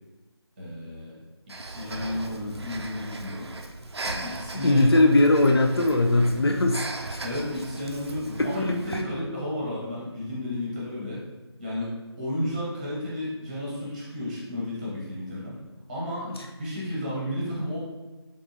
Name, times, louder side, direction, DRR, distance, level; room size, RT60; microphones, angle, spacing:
voice 1, 0.6-1.1 1.5-3.5 4.0-5.1 7.2-11.2 11.6-15.6 15.9-16.3 16.6-17.8, left 1 dB, 15° right, -6 dB, 0.8 m, -32 dB
Breathing, 1.5-9.0, right 2 dB, 70° right, 0.4 m, -38 dB
voice 2, 4.6-7.2 8.4-9.0 16.3-16.5, left 2 dB, 65° left, 3 dB, 0.4 m, -21 dB
3.6 x 3.5 x 2.6 m, 1.1 s
figure-of-eight pair, 160°, 14 cm